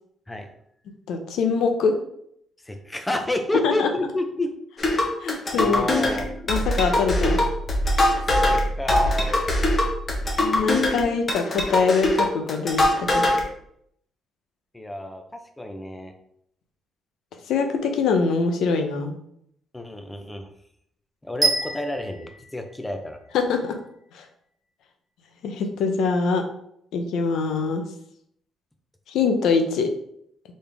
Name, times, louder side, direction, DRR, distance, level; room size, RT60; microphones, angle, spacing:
voice 1, 1.1-1.9 3.6-3.9 5.2-5.9 6.5-7.4 10.4-13.2 17.5-19.1 23.3-23.8 24.1-24.3 25.4-26.4 26.9-27.9 29.1-29.9, left 5 dB, 80° left, 5 dB, 0.8 m, -23 dB
voice 2, 2.6-4.5 5.5-6.3 8.3-9.4 14.7-16.1 19.7-20.5 21.2-23.2, left 1 dB, 10° left, 5 dB, 0.7 m, -30 dB
sound 1, 4.8-13.4, left 1 dB, 40° left, 1.2 m, -22 dB
sound 2, 21.4-23.5, right 3 dB, 15° right, 1.4 m, -27 dB
4.3 x 3.5 x 3.4 m, 0.70 s
cardioid pair, 90°, 0 cm